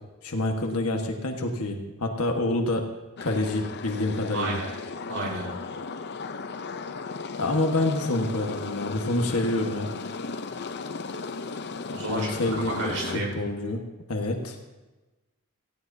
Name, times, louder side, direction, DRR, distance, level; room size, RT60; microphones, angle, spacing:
voice 1, 0.2-2.8 3.2-4.6 7.4-9.9 12.1-13.8 14.1-14.5, left 2 dB, 75° left, 2 dB, 1.5 m, -27 dB
sound 1, 3.2-13.2, left 4 dB, 50° left, 0.7 m, -36 dB
voice 2, 4.3-4.7 5.1-5.5 11.9-12.4 12.8-13.3, right 2 dB, 70° right, -2 dB, 4.9 m, -31 dB
18.5 x 16.0 x 2.8 m, 1.1 s
head